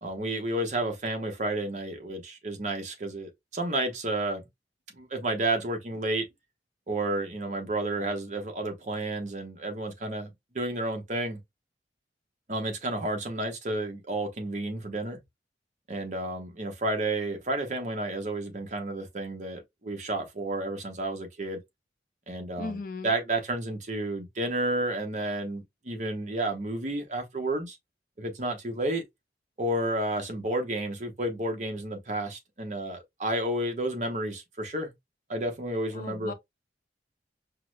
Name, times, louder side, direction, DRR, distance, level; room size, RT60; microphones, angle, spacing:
voice 1, 0.0-4.5 4.9-6.3 6.9-11.4 12.5-15.2 15.9-21.6 22.3-27.8 28.2-29.0 29.6-34.9 35.3-36.3, right 1 dB, 45° right, 0.8 m, -31 dB
voice 2, 22.6-23.1 35.9-36.3, left 3 dB, 50° left, 0.5 m, -37 dB
4.7 x 2.0 x 2.2 m
head